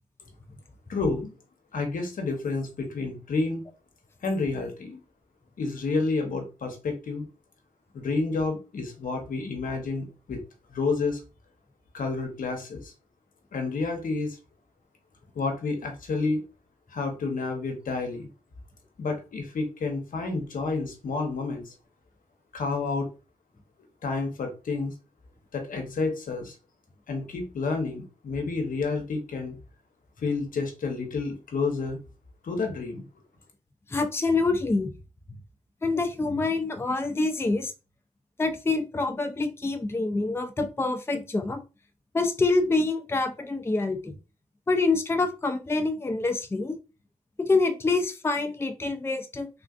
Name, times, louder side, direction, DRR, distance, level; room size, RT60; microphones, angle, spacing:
voice 1, 0.9-1.3 1.7-3.6 4.2-5.0 5.6-7.3 7.9-10.4 10.7-11.2 11.9-12.9 13.5-14.4 15.3-16.5 16.9-18.3 19.0-21.7 22.5-23.1 24.0-24.9 25.5-26.5 27.1-29.5 30.2-32.0 32.4-33.0, left 3 dB, 80° left, 4 dB, 0.8 m, -29 dB
voice 2, 33.9-34.9 35.8-37.7 38.4-41.6 42.1-44.1 44.7-46.8 47.4-49.5, left 3 dB, 15° left, 8 dB, 0.4 m, -26 dB
3.4 x 2.4 x 2.4 m, 0.31 s
cardioid pair, 60°, 14 cm